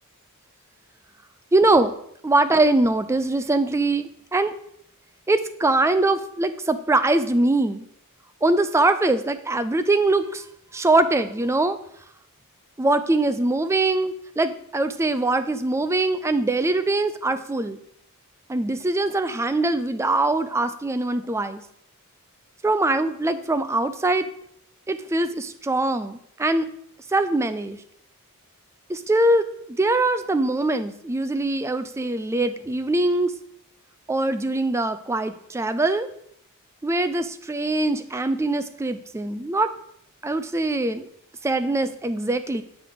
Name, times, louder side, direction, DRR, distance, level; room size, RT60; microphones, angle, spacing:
voice 1, 1.5-1.9 2.2-4.5 5.3-7.9 8.4-10.4 10.7-11.8 12.8-17.8 18.5-21.6 22.6-24.3 24.9-26.7 27.1-27.8 28.9-33.3 34.1-36.1 36.8-39.7 40.2-41.1 41.4-42.6, right 2 dB, 10° right, 10 dB, 0.3 m, -22 dB
7.6 x 4.8 x 3.9 m, 0.70 s
head